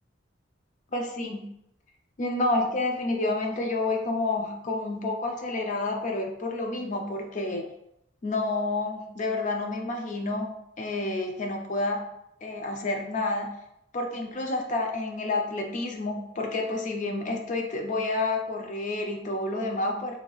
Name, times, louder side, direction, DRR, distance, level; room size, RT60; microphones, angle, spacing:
voice 1, 0.9-1.4 2.2-7.7 8.2-12.1 12.4-13.5 13.9-20.2, left 2 dB, 40° left, 2 dB, 0.4 m, -29 dB
2.7 x 2.4 x 3.0 m, 0.81 s
head